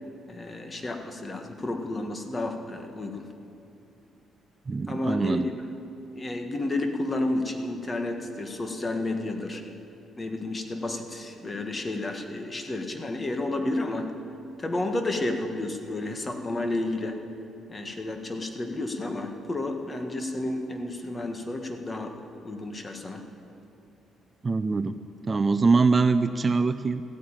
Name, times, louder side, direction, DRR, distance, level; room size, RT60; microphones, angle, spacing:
voice 1, 0.3-3.3 4.9-5.6 6.1-9.6 10.2-14.1 14.6-17.2 17.7-23.2, left 2 dB, 25° left, 5 dB, 1.6 m, -31 dB
voice 2, 4.7-5.5 24.4-24.9 25.3-27.0, right 4 dB, 30° right, 10 dB, 0.5 m, -23 dB
14.5 x 9.3 x 8.9 m, 2.7 s
cardioid pair, 90°, 0 cm